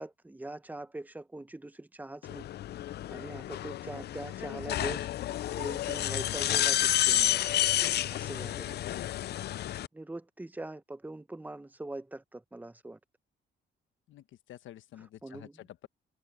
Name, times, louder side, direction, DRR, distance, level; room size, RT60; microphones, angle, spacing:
voice 1, 0.0-2.5 3.1-5.1 5.6-7.4 8.1-8.8 9.9-13.0 15.2-15.6, right 2 dB, 10° right, 1.0 m, -42 dB
sound 1, 2.2-9.9, left 12 dB, 55° left, 0.4 m, -30 dB
voice 2, 14.1-15.9, left 13 dB, 80° left, 1.1 m, -50 dB
cardioid pair, 90°, 20 cm